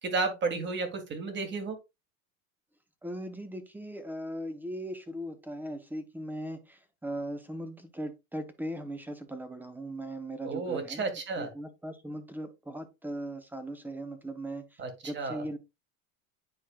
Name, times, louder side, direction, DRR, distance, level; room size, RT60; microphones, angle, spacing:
voice 1, 0.0-1.8 10.4-11.5 14.8-15.4, right 4 dB, 25° right, 1.7 m, -32 dB
voice 2, 3.0-11.0 11.4-15.6, right 1 dB, 5° right, 0.7 m, -39 dB
9.7 x 4.4 x 2.3 m
supercardioid pair, 135°, 42 cm